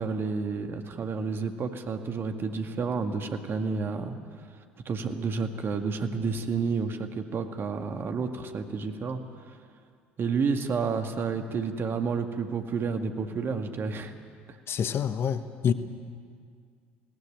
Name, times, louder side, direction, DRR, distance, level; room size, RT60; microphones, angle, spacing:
voice 1, 0.0-4.2 4.9-9.2 10.2-14.1, right 5 dB, 40° right, 6 dB, 2.0 m, -30 dB
voice 2, 14.7-15.7, left 8 dB, 40° left, 11 dB, 1.1 m, -27 dB
20.0 x 18.5 x 9.3 m, 2.2 s
figure-of-eight pair, 60°, 6 cm